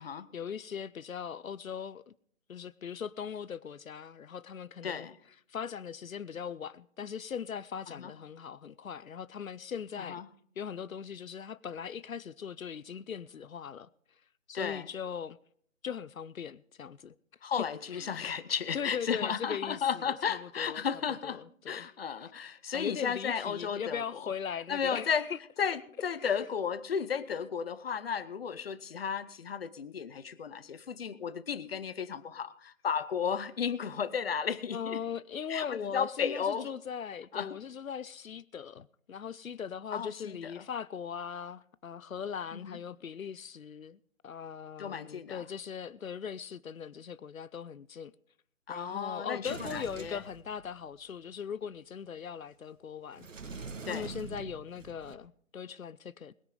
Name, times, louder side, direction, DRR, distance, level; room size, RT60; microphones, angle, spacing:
voice 1, 0.0-2.1 2.5-5.1 5.5-10.2 10.6-13.9 14.5-15.4 15.8-17.1 17.9-18.2 18.7-20.8 21.2-21.9 22.7-25.4 26.2-26.4 27.3-27.4 34.7-48.1 48.7-56.3, left 7 dB, 90° left, 0.6 m, -40 dB
voice 2, 4.8-5.2 8.0-8.1 10.0-10.3 14.5-14.9 17.4-21.4 21.7-24.3 24.7-25.3 25.6-35.0 35.5-36.7 37.3-37.6 39.9-40.6 42.5-42.8 44.8-45.5 48.7-50.2 53.8-54.1, left 7 dB, 45° left, 0.9 m, -34 dB
Sliding door, 49.4-51.0 53.1-55.1, right 4 dB, 70° right, 1.7 m, -44 dB
21.0 x 10.0 x 3.8 m
figure-of-eight pair, 150°, 40 cm